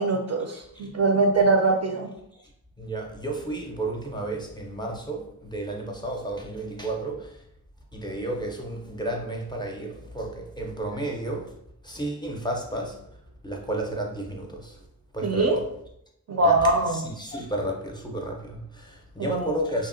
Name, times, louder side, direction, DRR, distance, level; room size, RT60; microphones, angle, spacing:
voice 1, 0.0-2.1 15.2-15.6 16.3-17.0 19.2-19.5, right 3 dB, 45° right, 3 dB, 0.4 m, -22 dB
voice 2, 2.8-7.4 7.9-11.5 11.8-13.0 13.4-14.8 15.1-15.6 16.4-16.6 16.9-19.9, right 1 dB, 10° left, 0 dB, 0.5 m, -32 dB
2.8 x 2.1 x 2.5 m, 0.74 s
cardioid pair, 50°, 37 cm